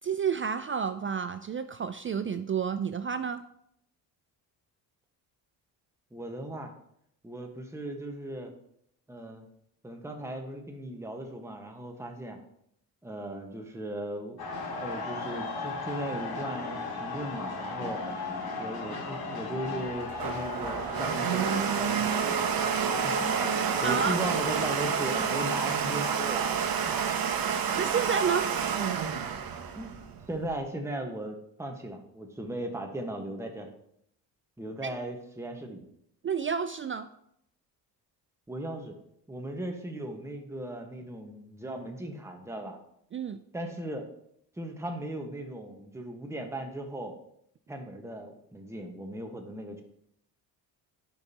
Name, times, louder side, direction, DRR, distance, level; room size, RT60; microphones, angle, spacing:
voice 1, 0.0-3.4 23.8-24.2 27.7-28.5 34.8-34.9 36.2-37.1 43.1-43.4, right 6 dB, 30° right, 11 dB, 0.4 m, -30 dB
voice 2, 6.1-6.7 7.2-8.5 9.1-9.5 9.8-12.4 13.0-18.0 18.6-22.6 23.0-26.6 26.9-27.0 29.8-30.0 30.3-33.7 34.6-35.9 38.5-38.9 39.3-42.8 43.5-44.1 44.6-47.1 47.7-49.8, right 1 dB, 5° right, 3 dB, 1.3 m, -37 dB
sound 1, 14.4-25.5, left 3 dB, 55° left, 2.3 m, -37 dB
Domestic sounds home sounds, 19.8-30.5, right 7 dB, 50° right, 1.0 m, -29 dB
10.5 x 5.3 x 2.9 m, 0.73 s
supercardioid pair, 70°, 45 cm